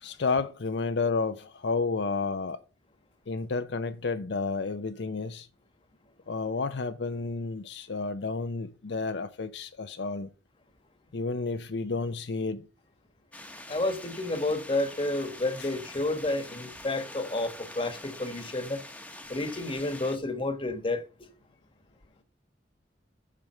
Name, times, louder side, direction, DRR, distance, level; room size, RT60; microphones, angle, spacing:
voice 1, 0.0-2.6 3.3-5.5 6.3-10.3 11.1-12.6 15.6-15.7, left 4 dB, 70° left, 0.6 m, -31 dB
sound 1, 13.3-20.2, left 1 dB, 10° left, 0.9 m, -45 dB
voice 2, 13.7-18.8 19.3-21.1, left 2 dB, 30° left, 1.2 m, -30 dB
7.4 x 5.1 x 6.6 m
head